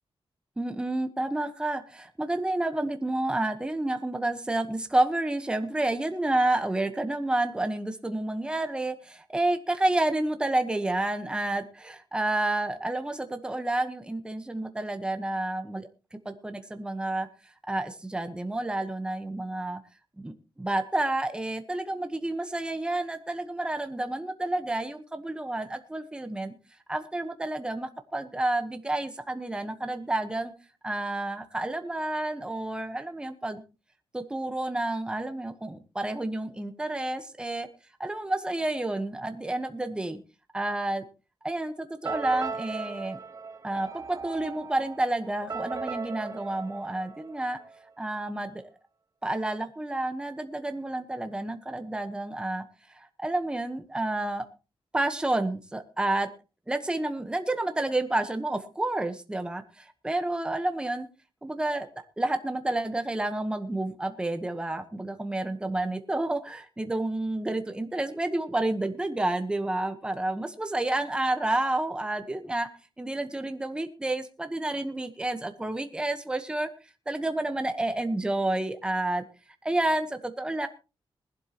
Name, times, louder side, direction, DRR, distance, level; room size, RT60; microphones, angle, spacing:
voice 1, 0.6-17.3 17.7-19.8 20.2-26.6 26.9-30.5 30.8-33.6 34.1-37.7 38.0-40.2 40.5-41.0 41.4-43.2 43.6-47.6 48.0-48.6 49.2-52.6 52.9-54.4 54.9-56.3 56.7-61.1 61.4-61.9 62.2-72.7 73.0-76.7 77.1-79.2 79.6-80.7, right 2 dB, 10° right, 8 dB, 1.1 m, -30 dB
sound 1, 42.0-47.8, right 4 dB, 35° right, 0.8 m, -38 dB
20.5 x 11.5 x 2.9 m, 0.31 s
wide cardioid pair, 160°, 10 cm